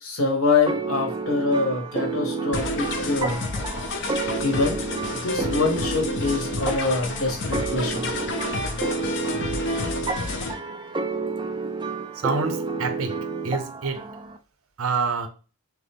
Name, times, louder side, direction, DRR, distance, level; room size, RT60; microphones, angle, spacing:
voice 1, 0.0-3.4 4.4-4.8 5.1-8.1, left 3 dB, 80° left, 1.2 m, -25 dB
sound 1, 0.7-14.4, right 4 dB, 20° right, 0.3 m, -30 dB
sound 2, 2.5-10.5, left 3 dB, 60° left, 0.7 m, -30 dB
voice 2, 12.2-14.1 14.8-15.3, right 4 dB, 80° right, 0.7 m, -27 dB
6.1 x 2.0 x 3.5 m
head